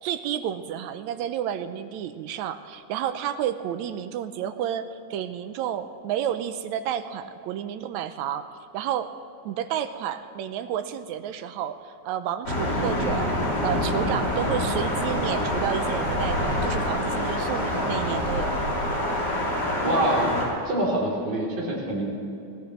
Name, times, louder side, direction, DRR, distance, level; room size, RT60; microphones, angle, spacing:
voice 1, 0.0-8.5 8.7-9.1 9.5-18.5, right 10 dB, 80° right, 10 dB, 1.8 m, -31 dB
Thunder, 12.4-20.4, left 1 dB, 35° left, 3.8 m, -26 dB
voice 2, 19.8-20.4 20.7-22.0, right 1 dB, 50° right, -5 dB, 4.2 m, -25 dB
22.5 x 17.0 x 3.1 m, 2.7 s
omnidirectional pair, 3.6 m